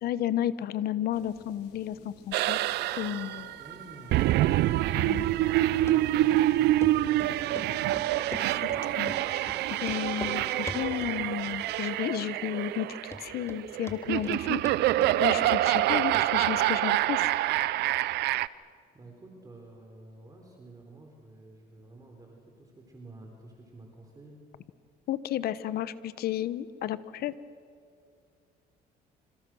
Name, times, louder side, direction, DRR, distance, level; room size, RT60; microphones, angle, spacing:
voice 1, 0.0-2.6 3.0-3.5 4.9-5.3 8.4-8.6 9.0-9.5 9.8-14.6 15.2-17.3 25.1-27.3, left 12 dB, 65° left, 15 dB, 1.1 m, -32 dB
sound 1, 1.1-11.0, left 6 dB, 85° left, 3.3 m, -56 dB
sound 2, 2.3-18.5, right 15 dB, 80° right, 0.6 m, -26 dB
voice 2, 3.6-4.2 5.6-8.0 18.9-24.4, right 2 dB, 20° right, 1 dB, 4.1 m, -50 dB
Run, 5.9-6.0 6.3-6.4 6.8-6.9 7.2-7.7 7.9-8.8 9.1-9.2 9.5-9.6 9.8-10.4 10.7-11.2 11.5-12.0 12.2-12.3 12.8-12.9 13.1-13.6 13.9-14.4 14.7-15.9 16.1-16.3 16.6-16.7, left 2 dB, 15° left, 2.4 m, -41 dB
26.5 x 26.0 x 6.3 m, 2.3 s
cardioid pair, 110°, 17 cm